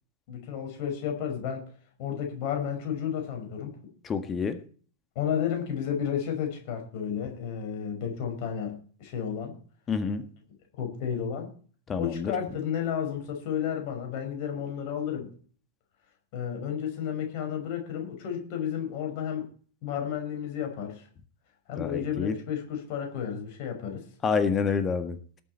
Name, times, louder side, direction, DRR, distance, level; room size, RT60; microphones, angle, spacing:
voice 1, 0.3-1.6 2.0-3.7 5.2-9.6 10.8-11.5 12.0-15.3 16.3-19.5 19.8-21.1 21.7-24.1, left 8 dB, 45° left, 3 dB, 5.5 m, -32 dB
voice 2, 4.0-4.6 9.9-10.2 11.9-12.3 21.8-22.3 24.2-25.2, left 5 dB, 25° left, 10 dB, 1.7 m, -28 dB
19.5 x 7.7 x 4.4 m, 0.42 s
figure-of-eight pair, 95°, 0 cm